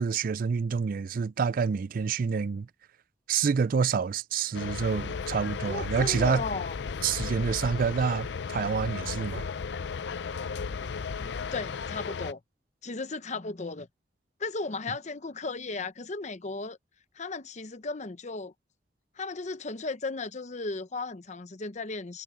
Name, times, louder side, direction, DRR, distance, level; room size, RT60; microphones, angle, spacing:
voice 1, 0.0-2.7 3.3-6.4 7.0-9.5, right 6 dB, 50° right, 0.4 m, -27 dB
sound 1, 4.5-12.3, left 5 dB, 65° left, 0.5 m, -35 dB
voice 2, 5.6-6.7 11.2-12.4 12.8-13.9 14.4-16.8 17.2-18.5 19.2-22.2, left 3 dB, 40° left, 0.8 m, -35 dB
head